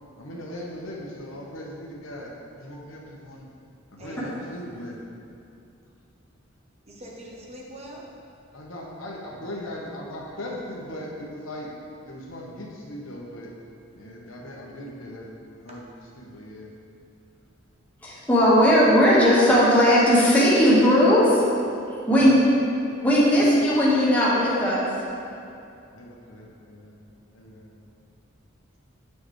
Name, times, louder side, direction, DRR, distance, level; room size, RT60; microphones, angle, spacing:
voice 1, 0.2-3.5 3.9-5.0 8.5-11.7 12.0-13.5 13.9-15.9 16.2-16.7 22.2-22.6 25.9-27.0 27.3-27.7, left 1 dB, 80° left, -2 dB, 1.2 m, -39 dB
voice 2, 4.0-4.6 6.8-8.1, equal, 30° right, -3 dB, 0.9 m, -43 dB
voice 3, 18.0-21.4 21.9-22.4 23.0-24.9, equal, 10° left, -9 dB, 1.6 m, -18 dB
8.5 x 6.4 x 3.2 m, 2.6 s
head